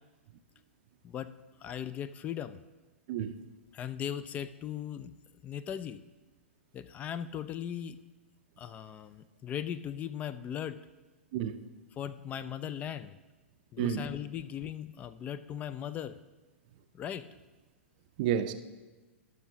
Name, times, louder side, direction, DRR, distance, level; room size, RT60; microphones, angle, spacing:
voice 1, 1.6-2.6 3.7-5.1 5.4-6.0 6.7-8.0 8.6-10.8 12.0-13.2 13.7-16.2 16.9-17.2, left 9 dB, 20° left, 0.4 m, -38 dB
voice 2, 3.1-3.4 11.3-11.6 13.8-14.0 18.2-18.5, right 9 dB, 40° right, 0.5 m, -30 dB
17.5 x 6.2 x 2.8 m
figure-of-eight pair, 105°, 7 cm